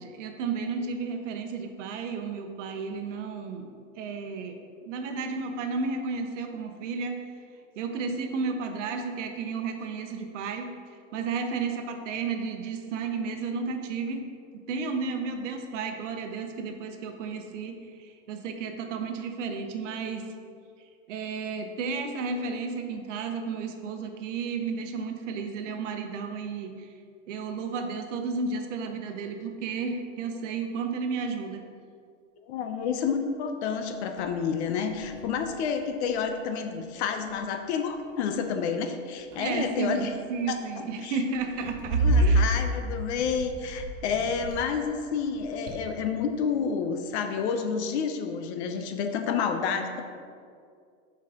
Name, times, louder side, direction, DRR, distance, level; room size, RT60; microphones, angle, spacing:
voice 1, 0.0-3.7 4.0-7.2 7.8-10.7 11.1-14.3 14.5-20.3 21.1-26.9 27.3-31.6 39.4-42.4, right 4 dB, 65° right, 5 dB, 0.9 m, -33 dB
voice 2, 32.5-40.1 40.5-40.6 41.0-41.1 41.9-50.0, left 6 dB, 55° left, 7 dB, 0.7 m, -29 dB
sound 1, 33.6-33.7 34.2-34.4 34.7-36.4 37.2-37.6 37.9-38.2 39.0-39.9 41.3-44.9 45.2-46.2, right 2 dB, 50° right, 1.6 m, -29 dB
5.9 x 4.8 x 4.9 m, 2.3 s
supercardioid pair, 155°, 39 cm